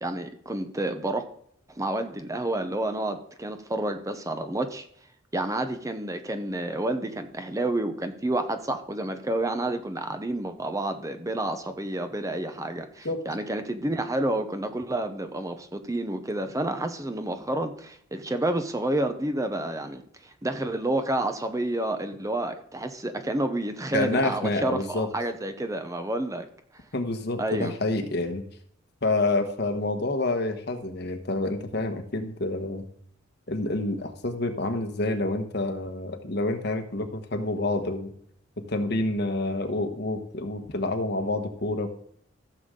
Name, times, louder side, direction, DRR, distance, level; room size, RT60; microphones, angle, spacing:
voice 1, 0.0-1.2 1.7-4.9 5.3-26.5 27.4-27.7, right 1 dB, 15° right, 8 dB, 0.8 m, -29 dB
voice 2, 23.9-25.1 26.9-28.4 29.0-32.8 33.5-38.1 38.7-41.9, left 2 dB, 55° left, 6 dB, 1.3 m, -28 dB
15.0 x 7.1 x 3.8 m, 0.65 s
head